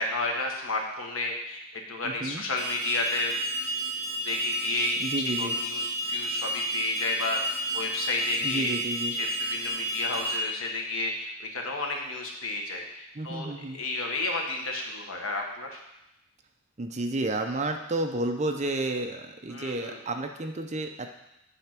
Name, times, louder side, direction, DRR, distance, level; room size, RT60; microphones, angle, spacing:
voice 1, 0.0-1.6 1.9-3.4 4.2-8.8 9.1-15.8 19.5-20.0, left 2 dB, 75° left, 1 dB, 1.3 m, -32 dB
voice 2, 2.0-2.4 5.0-5.6 8.4-9.1 13.1-13.8 16.8-21.1, right 2 dB, 35° right, 5 dB, 0.6 m, -31 dB
Alarm, 2.6-10.4, right 1 dB, 20° left, 1.2 m, -31 dB
9.1 x 3.5 x 5.9 m, 0.87 s
head